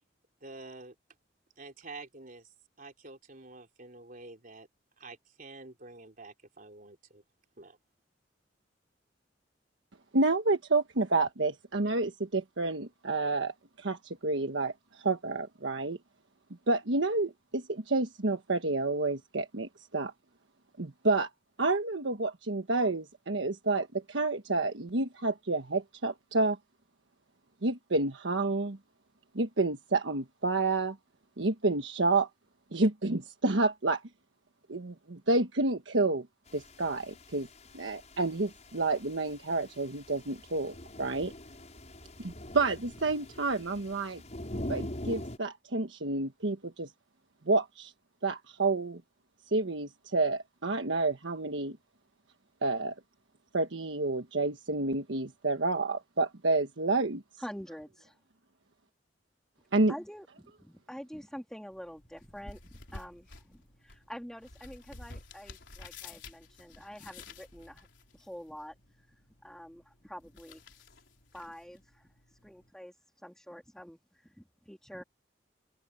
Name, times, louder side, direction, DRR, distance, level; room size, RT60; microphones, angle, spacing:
voice 1, 0.4-1.0 1.6-2.5 2.8-4.7 5.0-7.2 7.6-7.8, right 3 dB, 50° right, 3.8 m, -48 dB
voice 2, 10.1-16.0 16.7-20.1 20.8-21.3 21.6-26.6 27.6-28.8 29.3-31.0 31.4-32.3 32.7-34.0 34.7-36.3 36.5-37.5 37.7-41.3 42.2-44.2 44.7-46.9 47.5-47.9 48.2-49.0 49.5-51.8 52.6-52.9 53.5-57.2 59.7-59.9, right 3 dB, 85° right, 1.3 m, -29 dB
sound 1, 36.5-45.4, left 1 dB, 40° left, 6.2 m, -44 dB
voice 3, 57.4-58.2 59.9-67.9 68.1-69.1 69.4-70.6 71.3-72.1 72.4-72.9 73.2-75.0, equal, 5° left, 2.4 m, -46 dB
sound 2, 61.7-72.7, left 3 dB, 75° left, 4.1 m, -52 dB
open air
head